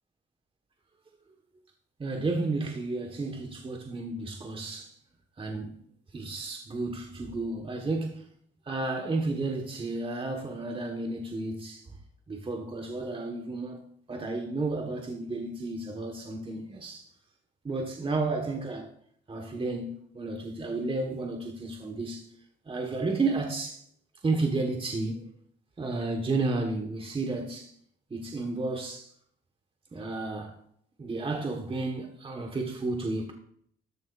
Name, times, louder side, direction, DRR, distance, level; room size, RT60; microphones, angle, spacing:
voice 1, 2.0-4.9 5.4-5.8 6.1-8.2 8.6-11.8 12.3-13.8 14.1-17.0 17.6-18.9 19.3-22.2 22.7-23.8 24.2-25.3 25.8-27.7 28.1-29.1 29.9-30.5 31.0-33.3, right 3 dB, 25° right, 1.6 m, -32 dB
14.0 x 10.5 x 2.7 m
cardioid pair, 90°, 20 cm